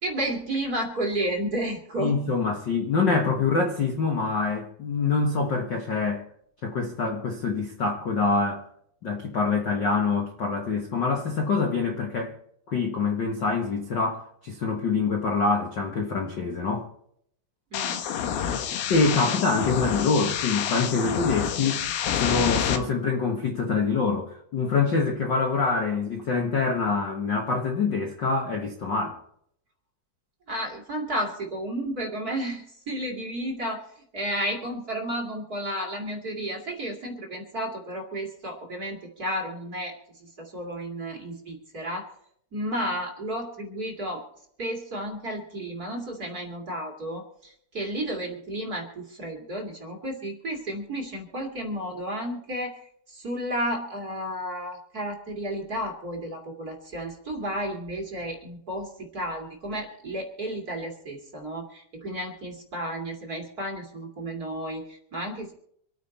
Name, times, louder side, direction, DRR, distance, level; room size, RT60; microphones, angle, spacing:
voice 1, 0.0-2.2 17.7-18.0 30.5-42.1 42.5-44.2 44.6-52.8 53.1-65.5, right 1 dB, 30° right, 2.3 m, -32 dB
voice 2, 2.0-6.2 6.6-8.7 9.0-12.3 12.7-16.9 18.9-21.8 22.2-29.2, left 4 dB, 55° left, 1.2 m, -25 dB
sound 1, 17.7-22.8, left 8 dB, 90° left, 3.1 m, -28 dB
26.5 x 9.3 x 4.2 m
omnidirectional pair, 4.2 m